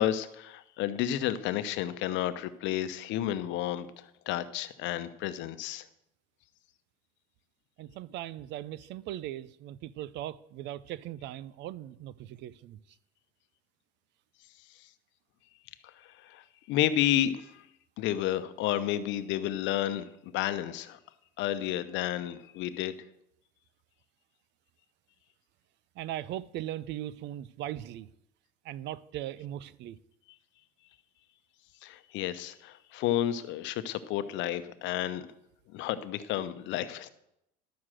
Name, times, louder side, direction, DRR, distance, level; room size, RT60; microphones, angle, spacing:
voice 1, 0.0-5.8 16.2-17.6 18.0-21.0 21.4-23.0 31.8-35.3 35.7-37.1, left 12 dB, 65° left, 0.9 m, -31 dB
voice 2, 7.8-12.8 26.0-28.1 28.6-30.0, right 13 dB, 60° right, 0.6 m, -39 dB
11.5 x 6.4 x 7.5 m
supercardioid pair, 105°, 21 cm